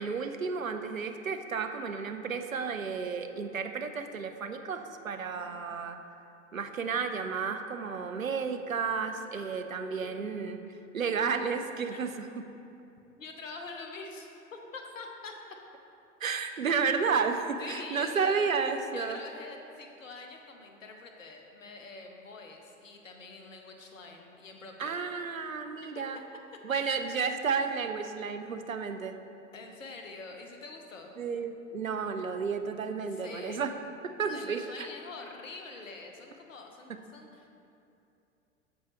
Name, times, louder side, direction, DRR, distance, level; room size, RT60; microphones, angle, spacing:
voice 1, 0.0-6.0 6.5-10.6 10.9-12.4 16.2-19.2 24.8-26.2 26.6-29.2 31.2-33.7 34.0-34.6, right 5 dB, 85° right, 7 dB, 0.6 m, -32 dB
voice 2, 5.3-5.6 11.9-12.0 13.1-15.3 17.6-18.6 18.9-25.0 25.8-26.0 26.7-27.0 29.5-31.1 33.1-33.7 34.3-37.5, left 3 dB, 75° left, 3 dB, 1.0 m, -45 dB
13.5 x 4.7 x 3.0 m, 2.7 s
figure-of-eight pair, 90°, 39 cm